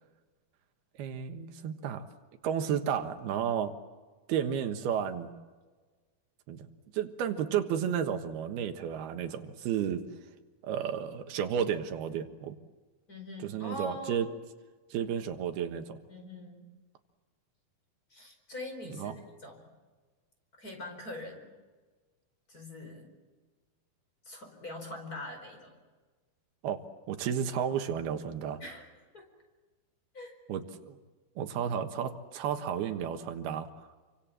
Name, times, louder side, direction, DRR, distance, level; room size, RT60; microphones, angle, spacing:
voice 1, 1.0-2.1 2.4-3.7 4.3-5.3 6.5-6.7 6.9-10.0 10.6-12.6 13.4-14.3 14.9-16.0 19.0-19.1 26.6-26.8 27.1-28.6 30.5-31.0 31.4-33.7, right 8 dB, 85° right, 7 dB, 3.4 m, -32 dB
voice 2, 13.1-14.3 16.1-16.7 18.1-19.7 20.6-21.5 22.5-23.1 24.2-25.8 28.6-28.9 29.1-29.3 30.1-30.4, left 1 dB, 25° left, 4 dB, 5.0 m, -43 dB
28.5 x 25.0 x 7.6 m, 1.3 s
omnidirectional pair, 4.3 m